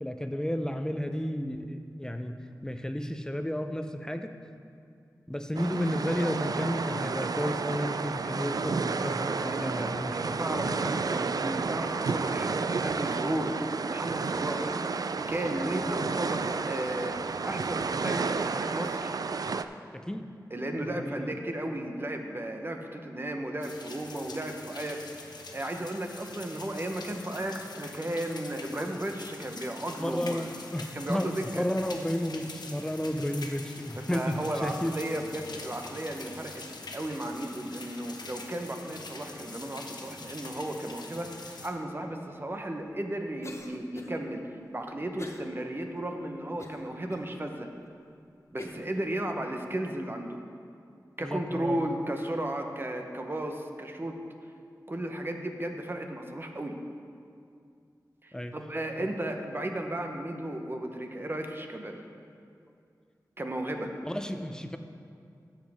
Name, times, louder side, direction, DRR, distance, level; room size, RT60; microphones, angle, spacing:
voice 1, 0.0-2.3 2.6-4.3 5.3-11.2 19.9-20.3 20.8-21.3 30.0-31.3 31.5-34.9 51.2-51.9 58.3-58.5 59.0-59.1 64.0-64.8, equal, 10° left, 7 dB, 0.6 m, -32 dB
sound 1, 5.5-19.6, right 4 dB, 60° right, 0.3 m, -31 dB
voice 2, 9.5-14.8 15.3-17.2 17.4-19.1 20.5-30.5 30.9-31.6 34.1-36.6 36.9-47.7 48.5-50.4 51.2-54.1 54.9-56.8 58.2-62.0 63.4-63.9, right 1 dB, 30° right, 3 dB, 0.9 m, -34 dB
More Rain, 23.6-41.7, left 3 dB, 85° left, 0.8 m, -45 dB
Cough, 43.4-44.2 45.2-45.5 46.0-46.1 46.6-47.3 47.9-48.0 48.6-48.9, left 2 dB, 40° left, 0.8 m, -43 dB
12.5 x 7.3 x 3.5 m, 2.4 s
wide cardioid pair, 65°, 7 cm